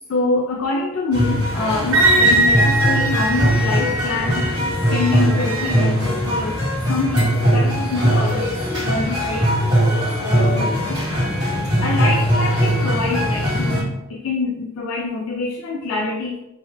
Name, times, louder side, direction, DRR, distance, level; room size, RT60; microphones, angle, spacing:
voice 1, 0.1-4.6 4.9-6.6 6.9-9.5 9.9-11.0 11.8-16.4, left 3 dB, 70° left, 0 dB, 0.3 m, -25 dB
sound 1, 1.1-13.8, equal, 20° right, 1.1 m, -20 dB
Wind instrument woodwind instrument, 1.9-5.8, right 2 dB, 75° right, 0.7 m, -21 dB
2.7 x 2.2 x 3.1 m, 0.95 s
head